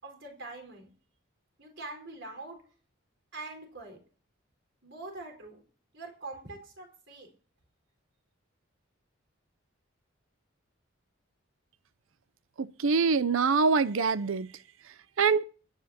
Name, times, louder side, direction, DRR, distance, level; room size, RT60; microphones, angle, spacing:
voice 1, 0.0-0.9 1.6-2.6 3.3-4.0 4.8-5.6 5.9-7.3, right 2 dB, 60° right, 4.6 m, -43 dB
voice 2, 12.6-14.5 15.2-15.4, right 5 dB, 75° right, 0.6 m, -24 dB
28.5 x 9.9 x 2.9 m
head